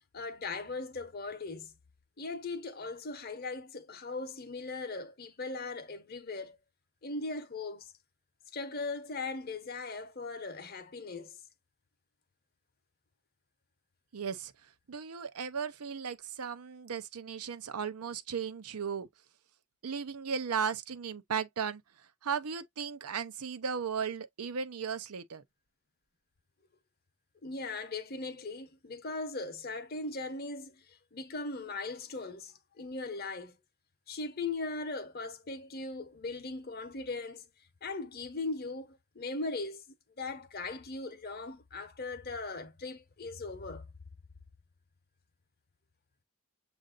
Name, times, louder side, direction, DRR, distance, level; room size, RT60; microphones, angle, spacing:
voice 1, 0.1-1.7 2.2-6.6 7.0-7.9 8.5-11.4 27.4-33.6 34.1-37.4 37.8-39.8 40.2-43.9, left 3 dB, 40° left, 0.8 m, -39 dB
voice 2, 14.1-14.5 14.9-19.1 19.8-21.8 22.2-25.4, right 6 dB, 85° right, 0.6 m, -36 dB
7.5 x 2.6 x 2.4 m
head